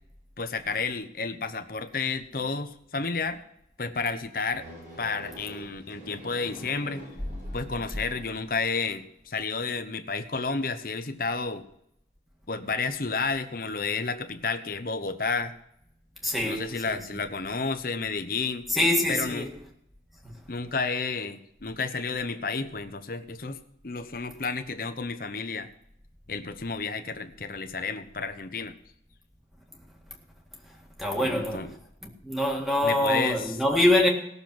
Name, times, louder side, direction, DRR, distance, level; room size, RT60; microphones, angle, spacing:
voice 1, 0.4-3.4 3.8-4.7 5.0-7.1 7.5-11.6 12.5-15.5 16.4-18.7 19.1-19.5 20.5-25.7 26.3-28.7 31.2-31.7 32.8-33.6, left 4 dB, 55° left, 1.0 m, -31 dB
sound 1, 4.5-8.6, equal, 50° right, 6.5 m, -46 dB
voice 2, 16.2-17.2 18.7-19.5 31.0-31.7 32.0-34.1, left 1 dB, ahead, 1.9 m, -25 dB
17.5 x 6.9 x 6.1 m
head